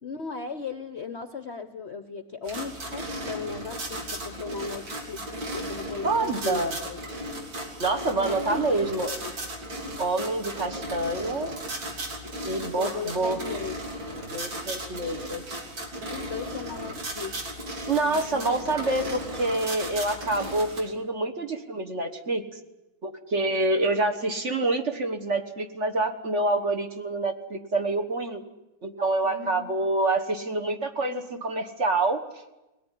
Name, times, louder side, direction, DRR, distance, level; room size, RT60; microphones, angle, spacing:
voice 1, 0.0-5.3 5.5-7.0 8.2-8.9 9.2-9.4 12.6-13.7 14.7-14.9 16.1-17.3 18.0-18.5 19.0-19.1 29.2-29.8, left 5 dB, 45° left, 9 dB, 0.9 m, -37 dB
sound 1, 2.4-20.8, right 1 dB, 85° right, 4.0 m, -36 dB
voice 2, 6.0-6.8 7.8-9.1 10.0-11.6 12.4-13.4 14.3-15.6 17.9-22.4 23.0-28.4 28.8-32.2, right 2 dB, 40° right, 6 dB, 1.6 m, -27 dB
21.0 x 18.0 x 9.9 m, 0.99 s
omnidirectional pair, 2.0 m